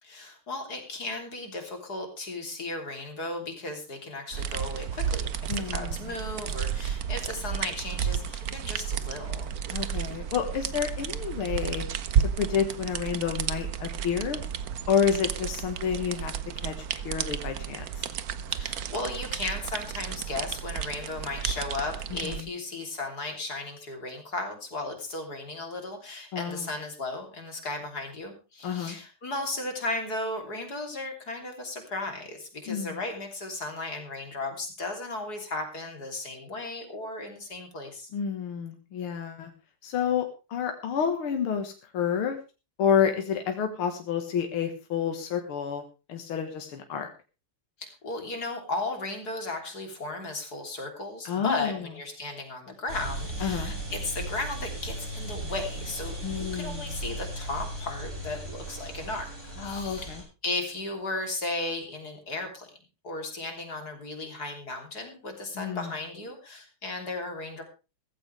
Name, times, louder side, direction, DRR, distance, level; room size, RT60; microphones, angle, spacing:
voice 1, 0.0-9.5 18.5-38.1 47.8-59.3 59.6-62.7 63.0-67.6, left 2 dB, 45° left, 3 dB, 3.8 m, -35 dB
sound 1, 4.3-22.4, right 8 dB, 60° right, 1.0 m, -32 dB
voice 2, 5.5-6.0 9.7-11.9 12.2-14.4 14.9-16.3 16.6-18.1 22.2-22.5 26.3-26.7 28.6-29.0 32.7-33.0 38.1-39.5 39.8-42.4 42.8-45.8 46.1-47.1 51.3-51.9 53.4-53.7 56.2-57.0 59.6-60.2 65.6-65.9, left 7 dB, 75° left, 4 dB, 2.4 m, -29 dB
sound 2, 52.9-60.2, right 1 dB, 35° right, 7.3 m, -37 dB
16.0 x 15.0 x 3.4 m, 0.30 s
omnidirectional pair, 2.4 m